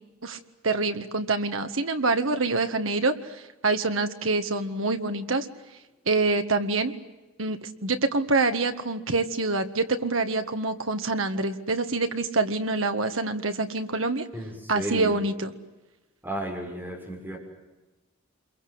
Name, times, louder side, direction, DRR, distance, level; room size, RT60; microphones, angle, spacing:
voice 1, 0.6-3.1 3.6-5.5 6.1-6.9 7.4-14.2 14.7-15.5, right 3 dB, 75° right, 7 dB, 1.8 m, -26 dB
voice 2, 14.3-15.3 16.2-17.4, equal, 10° right, 0 dB, 6.7 m, -34 dB
28.0 x 22.5 x 8.0 m, 1.1 s
head